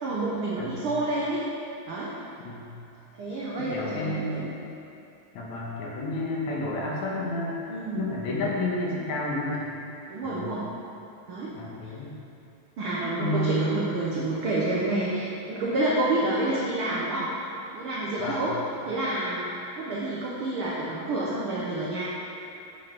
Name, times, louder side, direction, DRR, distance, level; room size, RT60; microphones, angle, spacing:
voice 1, 0.0-1.4 1.9-2.1 3.2-4.5 7.7-8.0 10.1-10.7 11.3-11.5 11.8-11.9 12.8-17.3 17.7-18.5 18.8-22.0, right 2 dB, 90° right, -6 dB, 1.1 m, -29 dB
voice 2, 3.6-4.6 5.3-7.7 7.9-9.7 10.2-10.5 11.5-12.1 13.2-13.7 18.2-18.4, left 1 dB, 70° left, -4 dB, 2.3 m, -30 dB
9.0 x 6.4 x 3.4 m, 2.7 s
omnidirectional pair, 3.7 m